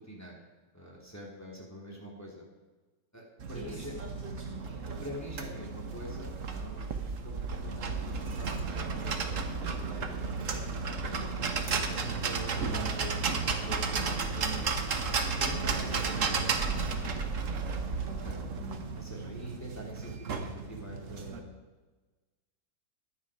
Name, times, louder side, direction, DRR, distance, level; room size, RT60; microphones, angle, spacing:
voice 1, 0.1-0.4 0.7-2.4 3.1-3.9 5.0-10.5 11.4-14.7 15.4-17.3 18.2-18.3 19.0-21.6, right 1 dB, 10° left, -3 dB, 2.9 m, -45 dB
sound 1, 3.4-21.4, right 4 dB, 50° right, 1.5 m, -33 dB
voice 2, 3.5-5.0 10.8-11.6 18.0-19.0, right 1 dB, 5° right, -5 dB, 5.3 m, -47 dB
15.5 x 10.5 x 4.9 m, 1.3 s
omnidirectional pair, 1.8 m